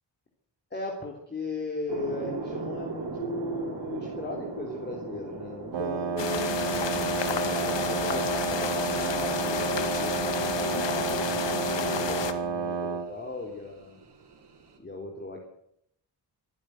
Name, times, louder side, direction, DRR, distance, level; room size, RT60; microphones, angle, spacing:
voice 1, 0.7-14.0 14.8-15.4, left 2 dB, 25° left, 0 dB, 3.4 m, -37 dB
sound 1, 1.9-14.8, right 4 dB, 70° right, 5.2 m, -41 dB
Wind instrument woodwind instrument, 5.7-13.1, right 5 dB, 85° right, 1.7 m, -30 dB
sound 2, 6.2-12.3, left 7 dB, 85° left, 2.1 m, -31 dB
25.0 x 11.0 x 9.5 m, 0.74 s
wide cardioid pair, 170°, 42 cm